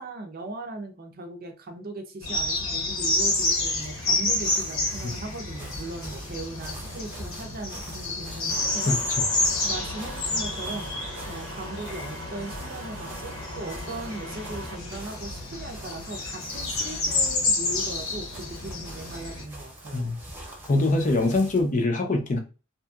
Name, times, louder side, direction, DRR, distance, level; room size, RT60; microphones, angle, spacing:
voice 1, 0.0-9.0 9.6-10.9 11.3-20.1, right 2 dB, 45° right, 0.6 m, -38 dB
sound 1, 2.2-19.4, left 2 dB, 70° left, 1.0 m, -29 dB
sound 2, 2.6-21.7, right 1 dB, 10° right, 0.9 m, -45 dB
sound 3, 8.5-14.8, right 1 dB, 85° right, 0.8 m, -41 dB
voice 2, 8.9-9.3 19.9-20.2 20.7-22.4, left 2 dB, 40° left, 0.5 m, -24 dB
2.8 x 2.6 x 2.3 m
head